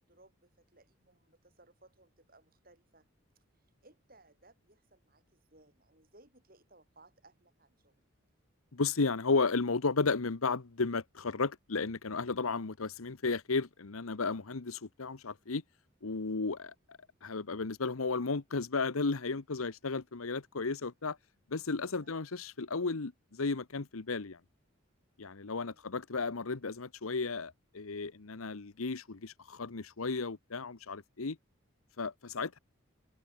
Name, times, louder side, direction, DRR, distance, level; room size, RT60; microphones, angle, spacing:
voice 1, 0.0-3.1 3.4-8.0 22.0-22.4 25.5-25.9, right 2 dB, 45° right, 7.0 m, -63 dB
voice 2, 8.7-15.6 16.0-21.2 21.5-24.4 25.2-31.4 32.0-32.6, left 4 dB, 85° left, 1.0 m, -34 dB
head